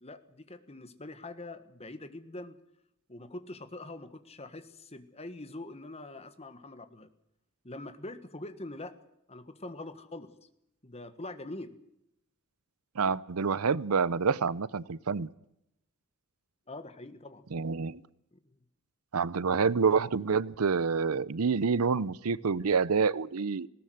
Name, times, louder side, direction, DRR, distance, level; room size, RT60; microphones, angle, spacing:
voice 1, 0.0-2.6 3.1-7.1 7.6-9.0 9.3-10.3 10.8-11.8 16.7-17.5 18.3-18.6, left 2 dB, 30° left, 11 dB, 1.5 m, -44 dB
voice 2, 13.0-15.3 17.5-18.0 19.1-23.7, right 5 dB, 80° right, 21 dB, 0.7 m, -27 dB
20.0 x 17.5 x 7.9 m, 0.82 s
head